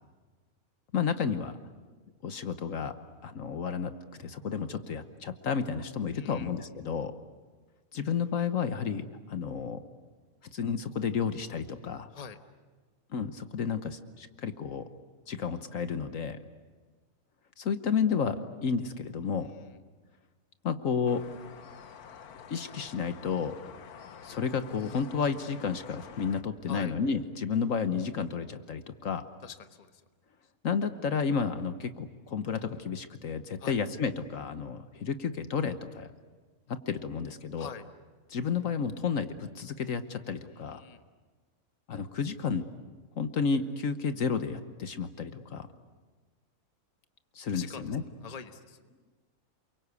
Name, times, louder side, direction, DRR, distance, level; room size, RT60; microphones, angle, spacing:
voice 1, 0.9-1.6 2.2-2.9 3.2-7.1 7.9-9.8 10.5-12.1 13.1-14.9 15.3-16.4 17.6-19.5 20.6-21.2 22.5-23.6 24.2-29.2 30.6-36.1 36.7-37.7 38.3-40.8 41.9-42.6 43.2-45.7 47.3-48.0, left 6 dB, 65° left, 10 dB, 1.4 m, -31 dB
voice 2, 6.1-6.5 12.1-12.4 19.4-19.8 26.7-26.9 29.4-30.0 33.6-33.8 37.6-37.8 40.5-41.0 47.5-48.8, left 6 dB, 30° left, 8 dB, 1.1 m, -45 dB
sound 1, 21.1-26.4, left 7 dB, 90° left, 1.6 m, -48 dB
28.5 x 23.0 x 8.3 m, 1.4 s
omnidirectional pair, 1.6 m